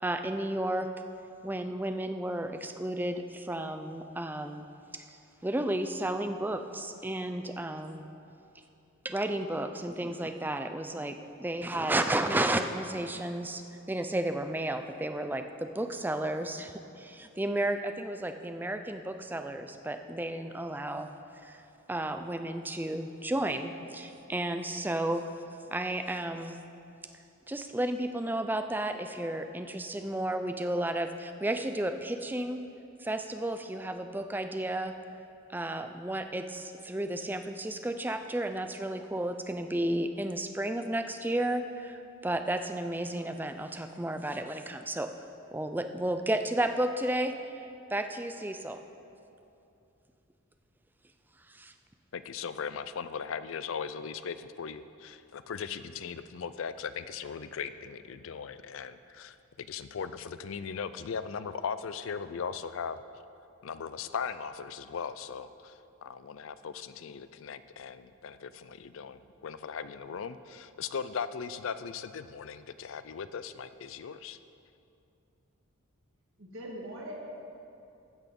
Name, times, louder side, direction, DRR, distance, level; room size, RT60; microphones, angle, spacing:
voice 1, 0.0-0.9 1.4-4.6 4.9-8.0 9.0-13.6 13.9-21.1 21.4-21.6 21.9-25.3 25.7-26.6 27.5-32.6 33.0-34.9 35.5-45.1 45.5-47.3 47.9-48.8 51.5-51.7, right 1 dB, 10° right, 7 dB, 0.4 m, -32 dB
voice 2, 52.1-63.0 63.6-74.4, left 6 dB, 65° left, 13 dB, 0.4 m, -38 dB
voice 3, 76.4-77.1, equal, 65° right, -3 dB, 1.7 m, -41 dB
15.0 x 6.0 x 5.3 m, 2.7 s
head